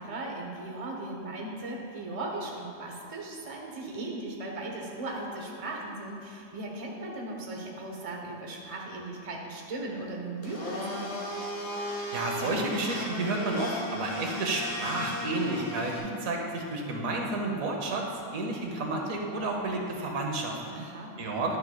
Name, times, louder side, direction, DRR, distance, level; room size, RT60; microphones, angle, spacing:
voice 1, 0.0-11.1 20.7-21.2, right 2 dB, 30° right, -1 dB, 0.9 m, -37 dB
Domestic sounds home sounds, 10.4-16.0, left 1 dB, 65° left, 1.6 m, -36 dB
voice 2, 12.1-18.0 18.3-20.6 21.2-21.6, right 2 dB, 90° right, 1 dB, 1.4 m, -31 dB
10.5 x 7.0 x 2.2 m, 2.4 s
omnidirectional pair, 1.4 m